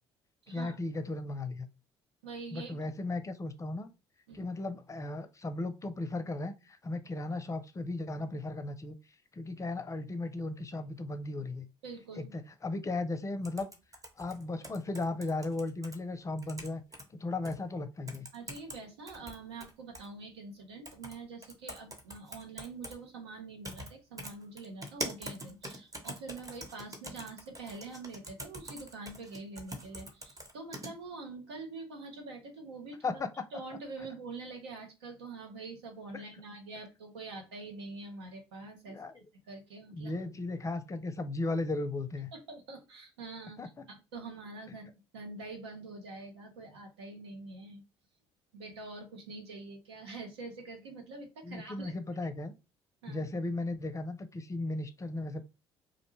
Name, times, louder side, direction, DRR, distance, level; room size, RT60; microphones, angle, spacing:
voice 1, 0.5-1.7 2.5-3.9 4.3-9.0 9.3-11.7 12.2-13.7 14.2-16.8 17.1-18.3 33.0-33.3 36.1-36.2 38.9-39.2 39.9-42.3 43.6-43.7 51.4-52.5 53.1-55.4, left 2 dB, 25° left, 0.5 m, -36 dB
voice 2, 2.2-2.8 4.3-4.4 11.8-12.3 18.3-33.2 33.5-39.0 39.5-40.1 42.3-43.6 43.9-44.9 45.1-47.8 48.5-52.0 53.0-53.2, right 3 dB, 85° right, 0.7 m, -45 dB
sound 1, 13.4-16.0 16.4-17.0 17.5-17.6 18.1-18.8 19.1-20.1 20.9-21.2 21.4-23.0 23.6-23.9 24.2-30.9, right 1 dB, 25° right, 0.9 m, -43 dB
2.5 x 2.1 x 3.0 m
hypercardioid pair, 55°, 13 cm